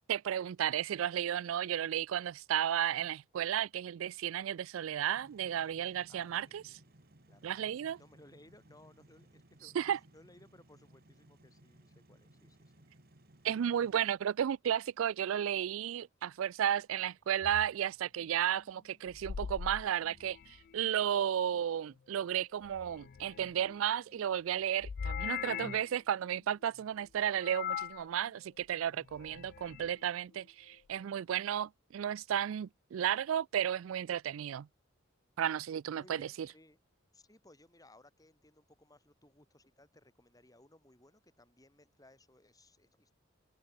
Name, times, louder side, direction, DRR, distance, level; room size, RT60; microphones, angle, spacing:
voice 1, 0.1-6.6 7.4-8.0 9.8-10.0 13.4-34.7 35.4-36.3, right 10 dB, 80° right, 0.3 m, -33 dB
sound 1, 5.2-14.0, right 1 dB, 50° right, 2.3 m, -62 dB
voice 2, 6.1-6.7 7.3-12.7 36.0-36.8 37.1-43.1, left 1 dB, 20° left, 5.4 m, -62 dB
sound 2, 17.4-17.7 19.1-20.7 22.6-23.8 24.8-26.0 27.4-28.1 29.0-29.9, left 8 dB, 50° left, 0.3 m, -41 dB
head